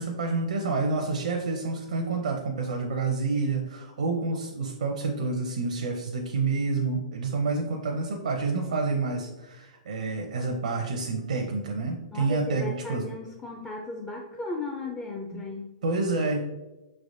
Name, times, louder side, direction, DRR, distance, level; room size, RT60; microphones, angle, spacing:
voice 1, 0.0-13.0 15.3-15.4 15.8-16.4, right 3 dB, 80° right, 2 dB, 0.6 m, -28 dB
voice 2, 12.1-15.7, left 3 dB, 15° left, -1 dB, 0.4 m, -35 dB
6.0 x 3.3 x 2.6 m, 1.1 s
hypercardioid pair, 130°, 4 cm